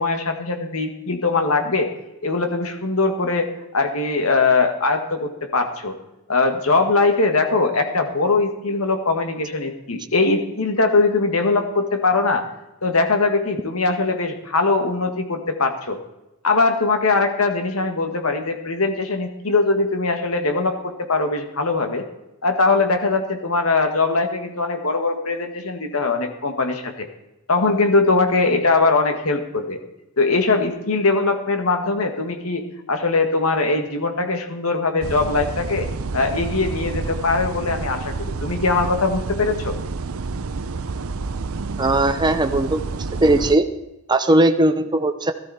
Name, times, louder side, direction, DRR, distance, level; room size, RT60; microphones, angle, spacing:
voice 1, 0.0-1.9 2.2-6.0 6.3-12.4 12.8-16.0 16.4-22.1 22.4-27.1 27.5-29.8 30.2-35.9 36.1-39.8, left 3 dB, 65° left, 5 dB, 1.8 m, -21 dB
sound 1, 35.0-43.6, right 4 dB, 65° right, 0.7 m, -29 dB
voice 2, 41.8-43.7 44.1-45.3, right 1 dB, 20° right, 6 dB, 0.7 m, -18 dB
17.0 x 13.5 x 4.3 m, 0.95 s
head